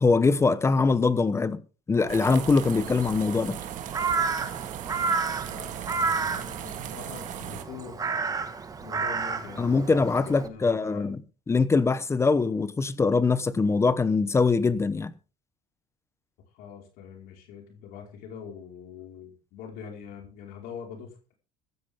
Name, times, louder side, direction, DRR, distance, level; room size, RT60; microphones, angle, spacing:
voice 1, 0.0-1.6 1.9-3.6 9.6-11.2 11.5-15.1, left 4 dB, 15° left, 0.9 m, -23 dB
Crow, 2.0-10.5, right 4 dB, 20° right, 1.7 m, -31 dB
sound 1, 2.1-7.6, right 11 dB, 50° right, 1.9 m, -38 dB
voice 2, 5.5-8.0 8.8-11.1 16.5-21.4, left 7 dB, 65° left, 4.8 m, -43 dB
15.5 x 13.5 x 3.7 m
cardioid pair, 135°, 17 cm